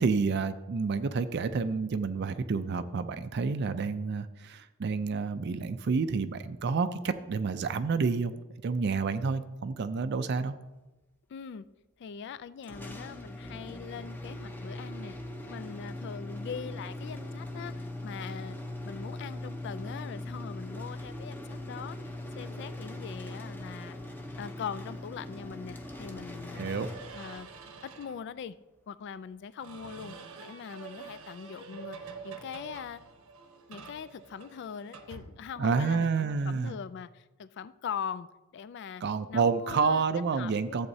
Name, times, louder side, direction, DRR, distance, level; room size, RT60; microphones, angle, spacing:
voice 1, 0.0-8.3 8.6-10.5 26.6-26.9 35.6-36.7 39.0-40.9, right 4 dB, 50° right, 11 dB, 0.4 m, -29 dB
voice 2, 11.3-11.6 12.0-15.2 15.5-18.6 18.8-24.0 24.4-26.7 27.1-27.5 27.8-28.5 28.9-33.0 33.7-38.3 38.5-39.0 39.3-40.0 40.4-40.8, left 7 dB, 55° left, 16 dB, 0.3 m, -41 dB
sound 1, 12.6-27.6, left 1 dB, 10° left, 0.7 m, -40 dB
sound 2, 26.5-28.2 29.6-35.9, right 4 dB, 90° right, 1.0 m, -47 dB
14.0 x 7.9 x 2.7 m, 1.1 s
head